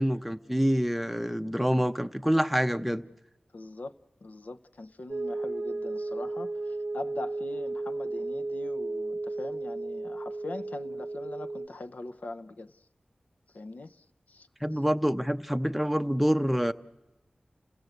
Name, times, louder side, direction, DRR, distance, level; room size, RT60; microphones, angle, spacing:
voice 1, 0.0-3.0 14.6-16.7, equal, ahead, 0.7 m, -26 dB
voice 2, 3.5-3.9 4.2-12.7 13.5-14.5, left 2 dB, 70° left, 0.7 m, -42 dB
sound 1, 5.1-11.7, right 2 dB, 35° right, 0.9 m, -34 dB
29.0 x 16.5 x 8.0 m
wide cardioid pair, 85°, 3 cm